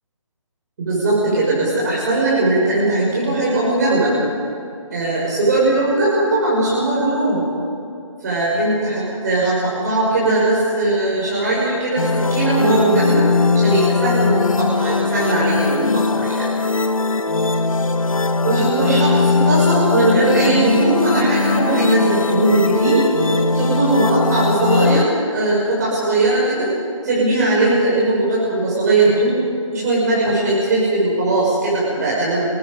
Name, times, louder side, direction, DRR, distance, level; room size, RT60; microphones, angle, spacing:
voice 1, 0.8-4.1 4.9-7.4 8.2-13.3 13.5-16.5 18.4-23.0 23.5-26.7 27.0-29.4 29.7-32.5, right 2 dB, 30° right, -6 dB, 6.1 m, -19 dB
sound 1, 12.0-25.0, left 4 dB, 85° left, 1.2 m, -19 dB
28.5 x 21.5 x 5.3 m, 2.6 s
figure-of-eight pair, 170°, 17 cm